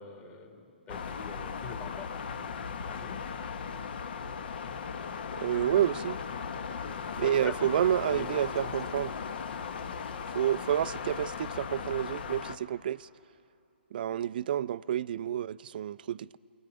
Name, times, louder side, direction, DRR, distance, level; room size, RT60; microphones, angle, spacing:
voice 1, 0.0-2.1 2.9-3.2 6.8-7.7 8.1-8.7, left 6 dB, 25° left, 2.1 m, -44 dB
sound 1, 0.9-12.6, left 6 dB, 60° left, 1.1 m, -37 dB
voice 2, 5.4-6.2 7.2-9.1 10.3-13.1 13.9-16.4, right 10 dB, 50° right, 0.4 m, -29 dB
29.0 x 24.0 x 5.2 m
hypercardioid pair, 140°, 6 cm